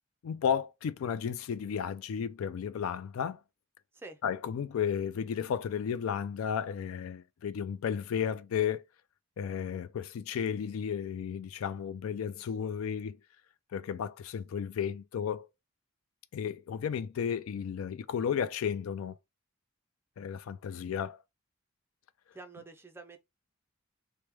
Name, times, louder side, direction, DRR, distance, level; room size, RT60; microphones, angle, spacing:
voice 1, 0.2-3.4 4.2-8.8 9.4-13.2 13.7-15.5 16.3-19.2 20.2-21.2 22.6-22.7, left 7 dB, 85° left, 0.3 m, -33 dB
voice 2, 22.3-23.2, right 3 dB, 10° right, 0.4 m, -47 dB
3.0 x 2.1 x 3.2 m
head